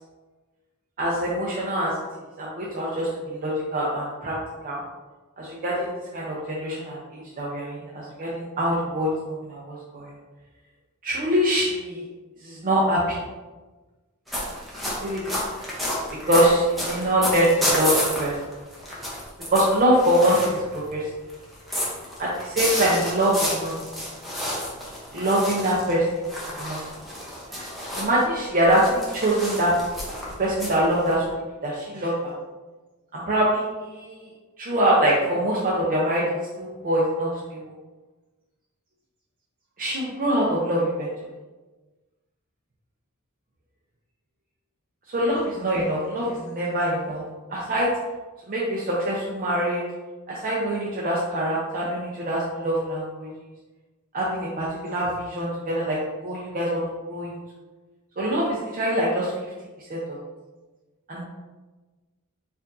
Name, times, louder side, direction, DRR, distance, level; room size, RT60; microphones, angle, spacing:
voice 1, 1.0-1.9 2.4-4.3 4.6-4.8 5.4-9.1 9.5-10.1 11.0-12.0 12.4-13.2 15.0-15.2 16.2-17.9 18.2-18.3 19.5-21.0 22.2-24.0 25.1-26.3 26.6-26.8 27.5-27.7 28.0-29.7 30.4-31.3 31.6-32.3 33.1-34.3 34.6-36.3 36.6-37.6 39.8-41.1 45.1-47.2 47.5-47.9 48.5-49.8 50.3-53.3 54.1-57.3 58.2-59.3 59.9-60.0 61.1-61.2, right 1 dB, 40° right, -5 dB, 0.5 m, -24 dB
sound 1, 14.3-20.9 21.3-28.2 28.6-31.3, equal, ahead, 0.7 m, -30 dB
4.5 x 2.5 x 2.5 m, 1.2 s
head